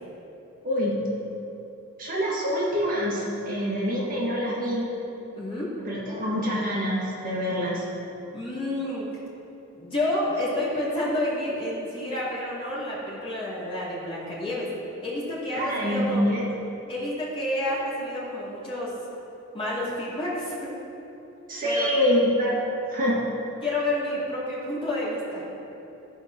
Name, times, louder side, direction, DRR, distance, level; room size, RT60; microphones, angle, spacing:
voice 1, 0.6-1.0 2.0-4.9 5.9-7.9 15.5-16.5 21.5-22.6 22.9-23.2, equal, 40° right, -5 dB, 1.9 m, -25 dB
voice 2, 5.4-5.8 8.3-9.1 9.7-14.7 15.0-16.3 16.9-18.9 19.5-20.8 21.6-21.9 23.6-25.4, left 1 dB, 25° left, -7 dB, 2.6 m, -29 dB
15.5 x 5.2 x 6.0 m, 3.0 s
head